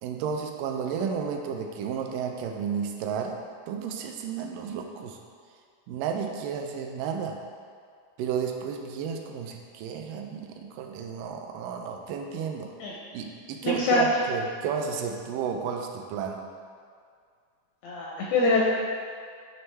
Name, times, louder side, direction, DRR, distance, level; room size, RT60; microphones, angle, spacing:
voice 1, 0.0-5.2 5.9-7.4 8.2-12.7 13.1-16.4, right 7 dB, 80° right, 3 dB, 2.1 m, -32 dB
voice 2, 13.6-14.0 17.8-18.7, left 3 dB, 80° left, -4 dB, 1.6 m, -24 dB
9.2 x 3.4 x 3.3 m, 2.1 s
omnidirectional pair, 3.9 m